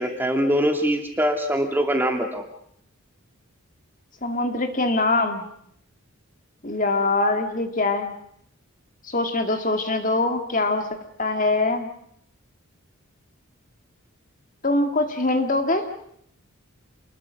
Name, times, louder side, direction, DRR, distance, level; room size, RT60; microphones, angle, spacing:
voice 1, 0.0-2.4, equal, 10° right, 4 dB, 2.6 m, -23 dB
voice 2, 4.2-5.5 6.6-8.1 9.0-10.9 11.2-11.9 14.6-15.9, left 2 dB, 35° left, 6 dB, 2.1 m, -23 dB
28.5 x 21.5 x 6.3 m, 0.70 s
head